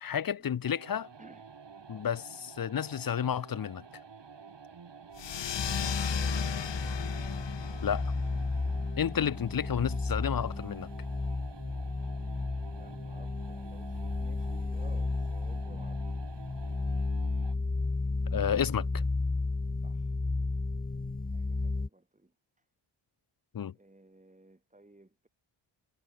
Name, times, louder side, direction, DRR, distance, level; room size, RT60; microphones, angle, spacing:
voice 1, 0.0-1.1 1.9-3.8 7.8-8.1 9.0-10.9 18.3-19.0 23.5-23.7, left 8 dB, 45° left, 0.7 m, -31 dB
sound 1, 0.6-17.7, right 5 dB, 60° right, 7.1 m, -50 dB
voice 2, 1.2-1.6 6.0-6.4 12.2-16.2 19.8-20.2 21.3-22.6 23.7-25.3, right 2 dB, 15° right, 4.1 m, -58 dB
sound 2, 5.1-10.2, left 9 dB, 60° left, 1.0 m, -38 dB
sound 3, 5.6-21.9, left 3 dB, 15° left, 1.2 m, -33 dB
wide cardioid pair, 115°, 49 cm